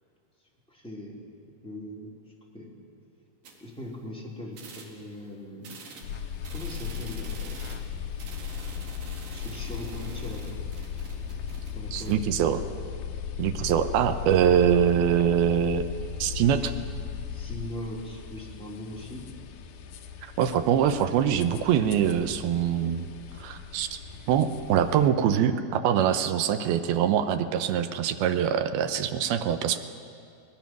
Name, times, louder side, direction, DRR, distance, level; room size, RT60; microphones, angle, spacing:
voice 1, 0.7-1.2 1.6-2.1 2.5-2.7 3.6-5.8 6.5-7.5 9.3-10.6 11.7-12.4 17.3-19.2, left 1 dB, ahead, -4 dB, 2.4 m, -40 dB
sound 1, 3.4-4.1 4.5-5.2 5.6-12.1, right 4 dB, 60° right, 3.3 m, -46 dB
sound 2, 6.0-25.1, left 7 dB, 85° left, 1.7 m, -37 dB
voice 2, 11.9-12.6 13.4-15.8 16.2-16.7 20.2-23.1 23.4-24.0 24.3-29.8, right 9 dB, 80° right, 9 dB, 2.3 m, -24 dB
22.5 x 19.5 x 6.0 m, 2.4 s
omnidirectional pair, 5.0 m